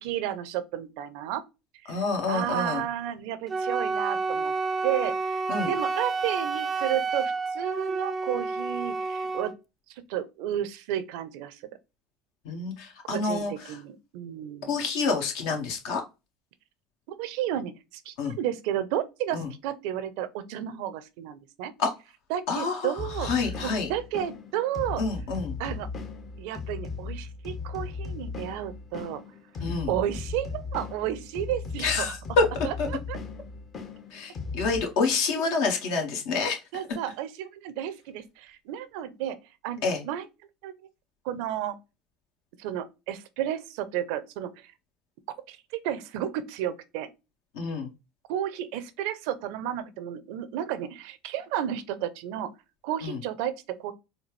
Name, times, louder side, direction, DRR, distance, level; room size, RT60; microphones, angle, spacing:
voice 1, 0.0-1.4 1.8-2.0 2.3-4.5 4.8-9.6 10.1-11.6 13.1-14.8 17.1-21.7 22.3-23.3 23.6-25.0 25.6-25.9 26.4-29.2 29.9-32.1 32.6-33.2 36.7-39.4 39.6-40.3 40.6-40.7 41.2-41.8 42.6-44.7 45.5-45.6 45.8-47.1 48.3-52.5 52.8-53.9, right 11 dB, 75° right, 0.5 m, -32 dB
voice 2, 1.9-2.8 5.5-5.7 12.4-13.8 14.7-16.0 18.2-18.3 19.3-19.5 21.8-21.9 22.5-22.9 23.2-23.9 25.0-25.6 29.6-29.9 31.8-32.5 32.8-32.9 34.1-36.6 39.8-40.0 47.5-47.9 53.0-53.2, left 4 dB, 75° left, 1.5 m, -28 dB
Wind instrument woodwind instrument, 3.5-9.6, right 4 dB, 25° right, 0.4 m, -29 dB
sound 1, 23.0-34.8, left 4 dB, 40° left, 0.9 m, -37 dB
4.3 x 2.3 x 3.1 m
supercardioid pair, 95°, 0 cm